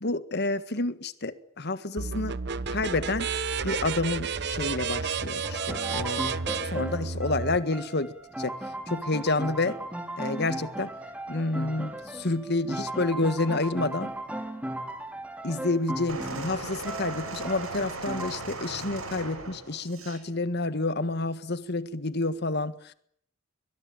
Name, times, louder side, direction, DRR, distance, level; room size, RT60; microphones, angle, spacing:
voice 1, 0.0-2.4 2.7-3.3 3.6-6.3 6.6-8.6 8.9-9.8 10.2-10.9 11.3-14.1 15.4-22.9, left 2 dB, 50° left, 1.7 m, -29 dB
sound 1, 2.0-7.6, right 5 dB, 55° right, 1.0 m, -31 dB
sound 2, 5.4-18.3, right 1 dB, 5° right, 3.0 m, -37 dB
sound 3, 16.1-20.2 21.1-21.2, right 3 dB, 85° right, 6.5 m, -37 dB
23.0 x 21.5 x 9.0 m
head